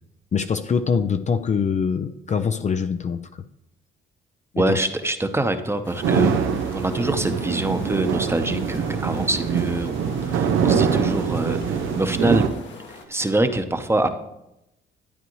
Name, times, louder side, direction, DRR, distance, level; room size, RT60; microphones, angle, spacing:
voice 1, 0.3-3.2 4.5-4.8, left 6 dB, 35° left, 9 dB, 0.5 m, -23 dB
voice 2, 4.6-12.5 13.1-14.1, right 2 dB, 10° right, 8 dB, 0.9 m, -25 dB
sound 1, 5.8-13.0, left 4 dB, 70° left, 1.4 m, -42 dB
sound 2, 6.0-12.5, right 6 dB, 85° right, 0.8 m, -23 dB
12.0 x 9.2 x 3.1 m, 0.86 s
cardioid pair, 90°, 20 cm